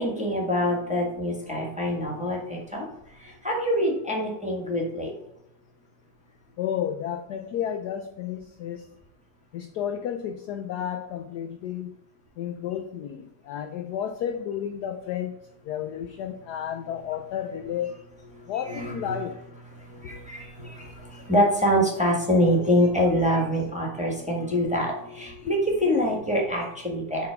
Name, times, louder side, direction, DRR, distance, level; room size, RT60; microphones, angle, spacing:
voice 1, 0.0-2.9 3.1-5.1 18.3-19.2 19.8-27.3, equal, 5° right, -1 dB, 1.2 m, -25 dB
voice 2, 6.6-8.9 9.5-12.0 12.4-15.4 15.6-18.0 18.5-19.4 20.0-20.2 25.4-25.5, left 9 dB, 70° left, 6 dB, 1.0 m, -32 dB
6.7 x 3.8 x 5.8 m, 0.78 s
omnidirectional pair, 2.1 m